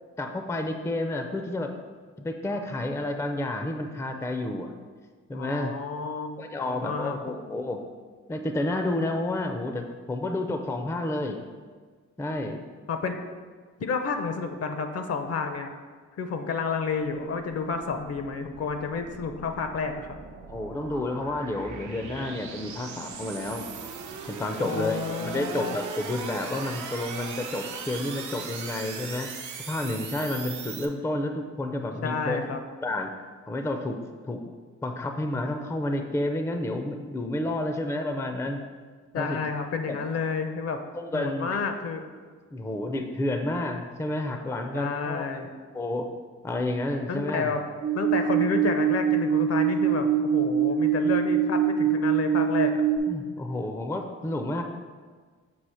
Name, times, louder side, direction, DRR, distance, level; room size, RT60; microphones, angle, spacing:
voice 1, 0.2-1.7 2.2-4.7 5.3-5.7 6.4-7.8 8.3-11.4 12.2-12.6 20.5-23.7 24.3-29.3 29.7-32.5 32.8-33.1 33.5-34.0 34.3-34.4 34.8-38.6 39.1-39.4 39.9-40.0 40.9-41.6 42.5-45.3 45.7-46.1 46.4-47.5 53.1-54.6, left 1 dB, 10° left, 5 dB, 0.4 m, -30 dB
voice 2, 5.3-7.4 12.9-13.2 13.8-15.7 16.2-20.2 24.6-25.8 32.0-32.6 39.1-40.8 41.1-42.1 44.7-45.5 47.1-47.6 47.9-52.8, left 5 dB, 55° left, 6 dB, 0.6 m, -30 dB
sound 1, 17.0-30.9, right 5 dB, 75° right, 0.7 m, -40 dB
sound 2, 47.8-53.0, right 8 dB, 40° right, 0.6 m, -23 dB
6.2 x 2.8 x 5.5 m, 1.5 s
cardioid pair, 100°, 30 cm